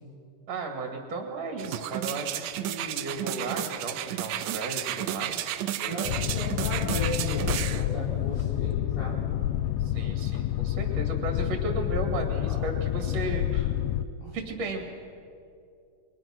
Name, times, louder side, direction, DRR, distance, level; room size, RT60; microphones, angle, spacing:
voice 1, 0.5-5.7 9.8-13.7 14.3-14.8, right 2 dB, 55° right, 2 dB, 3.4 m, -35 dB
sound 1, 1.6-7.9 8.4-8.5, right 12 dB, 90° right, 2.4 m, -32 dB
voice 2, 5.8-9.2 12.4-12.6 14.2-14.3, left 1 dB, 65° left, -7 dB, 6.0 m, -35 dB
Boat Water vehicle, 6.0-14.0, left 13 dB, 85° left, 2.3 m, -28 dB
29.0 x 23.0 x 6.2 m, 2.5 s
omnidirectional pair, 3.7 m